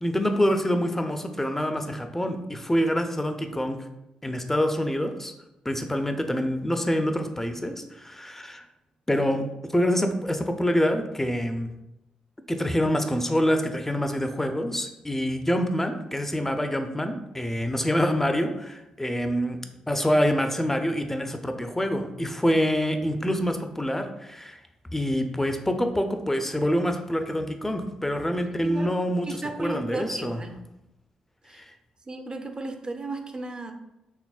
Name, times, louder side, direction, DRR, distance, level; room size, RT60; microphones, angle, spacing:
voice 1, 0.0-3.9 4.2-5.3 5.6-8.6 9.1-11.7 12.5-19.6 19.9-24.6 24.9-29.3 29.6-30.4 31.5-31.7, equal, 10° left, 6 dB, 0.5 m, -26 dB
voice 2, 29.2-30.6 31.5-31.6 32.1-33.7, right 3 dB, 30° right, 5 dB, 0.6 m, -35 dB
4.8 x 3.2 x 2.4 m, 0.91 s
hypercardioid pair, 45°, 3 cm